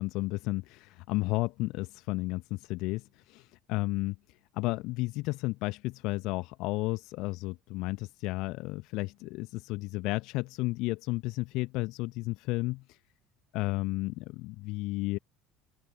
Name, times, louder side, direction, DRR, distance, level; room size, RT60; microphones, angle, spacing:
voice 1, 0.0-13.0 13.5-15.2, left 22 dB, 55° left, 1.1 m, -33 dB
open air
figure-of-eight pair, 60°, 0 cm